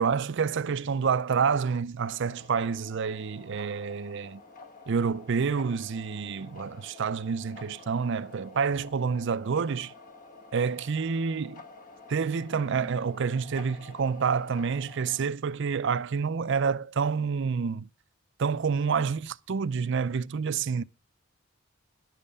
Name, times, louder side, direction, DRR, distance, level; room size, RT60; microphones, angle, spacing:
voice 1, 0.0-4.4 4.9-9.9 10.5-11.6 12.1-17.9 18.4-20.8, right 5 dB, 60° right, 0.5 m, -28 dB
sound 1, 2.0-15.2, left 3 dB, 45° left, 1.2 m, -49 dB
11.0 x 7.5 x 6.7 m
head